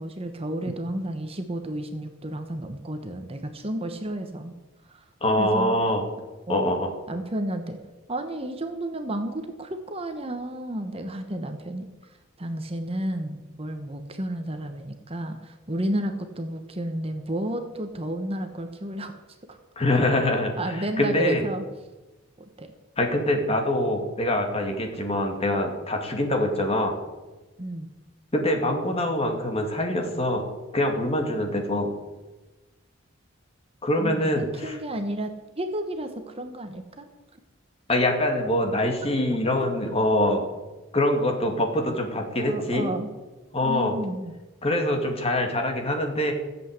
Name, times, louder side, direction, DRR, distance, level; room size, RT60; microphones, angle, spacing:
voice 1, 0.0-4.5 4.9-5.0 5.4-5.7 6.5-6.8 7.1-7.8 8.1-19.1 19.5-19.6 20.6-21.6 22.4-22.7 27.6-27.9 34.0-37.1 39.3-39.7 40.2-40.4 42.4-43.1 43.6-44.3, right 1 dB, 30° right, 6 dB, 1.1 m, -32 dB
voice 2, 5.2-6.0 6.5-6.9 19.8-20.5 21.0-21.4 23.0-27.0 28.3-30.4 30.7-31.9 33.8-34.8 37.9-40.4 40.9-42.9 43.5-44.0 44.6-46.3, left 1 dB, 30° left, 3 dB, 2.4 m, -24 dB
15.0 x 8.1 x 8.1 m, 1.2 s
head